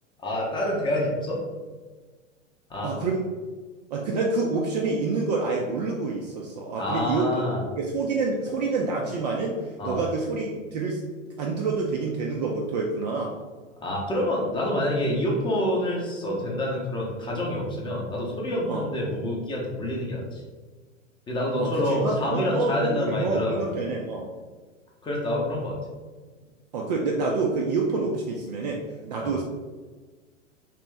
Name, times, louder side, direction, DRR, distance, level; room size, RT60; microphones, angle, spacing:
voice 1, 0.2-1.4 2.7-2.9 6.8-7.6 9.8-10.0 13.8-20.4 21.3-23.6 25.0-25.8 29.2-29.3, left 1 dB, 10° left, -3 dB, 0.7 m, -27 dB
voice 2, 2.8-3.2 3.9-7.4 7.8-11.0 11.4-13.3 18.7-18.9 21.6-24.3 26.7-29.4, right 3 dB, 35° right, 0 dB, 0.4 m, -27 dB
3.3 x 3.0 x 3.3 m, 1.4 s
figure-of-eight pair, 95°, 38 cm